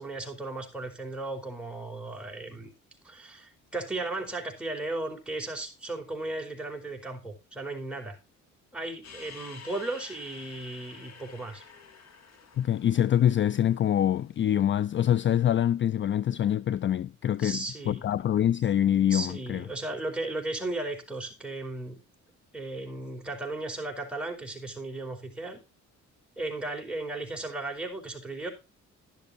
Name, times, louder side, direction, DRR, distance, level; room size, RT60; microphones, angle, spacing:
voice 1, 0.0-2.7 3.0-8.2 8.7-11.6 17.4-18.0 19.1-22.0 22.5-25.6 26.4-28.5, right 2 dB, 5° right, 4.7 m, -35 dB
sound 1, 9.0-14.4, left 5 dB, 60° left, 2.9 m, -50 dB
voice 2, 12.6-17.6 17.9-19.6, left 10 dB, 40° left, 0.4 m, -25 dB
12.5 x 11.0 x 2.6 m
cardioid pair, 90°, 30 cm